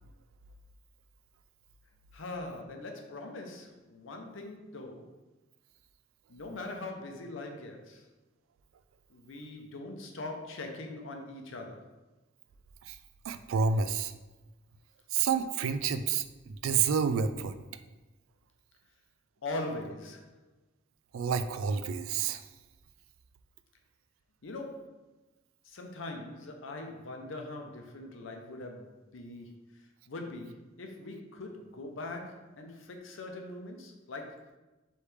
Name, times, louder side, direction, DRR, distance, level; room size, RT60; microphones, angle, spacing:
voice 1, 2.1-5.1 6.3-8.0 9.1-11.9 19.4-20.2 24.4-24.9 25.7-29.6 30.1-34.6, left 2 dB, 75° left, 3 dB, 0.7 m, -41 dB
voice 2, 13.3-14.1 15.1-17.6 21.1-22.4, right 6 dB, 90° right, 11 dB, 0.3 m, -29 dB
3.3 x 3.2 x 4.7 m, 1.1 s
head